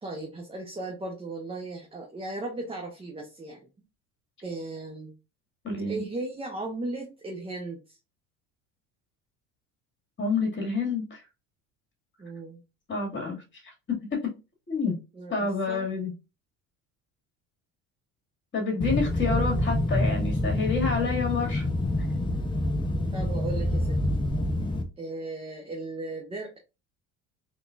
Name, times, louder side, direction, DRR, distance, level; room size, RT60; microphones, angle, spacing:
voice 1, 0.0-3.7 4.4-5.1 5.8-8.0 12.2-12.6 15.1-15.9 23.1-24.0 25.0-26.6, right 2 dB, 15° right, 0.9 m, -36 dB
voice 2, 5.6-6.0 10.2-11.2 12.9-13.4 13.9-14.3 14.7-15.0 15.3-16.1 18.5-21.6, left 4 dB, 35° left, 2.1 m, -28 dB
sound 1, 18.8-24.8, left 1 dB, 15° left, 0.7 m, -27 dB
3.7 x 3.5 x 2.5 m
supercardioid pair, 100°, 32 cm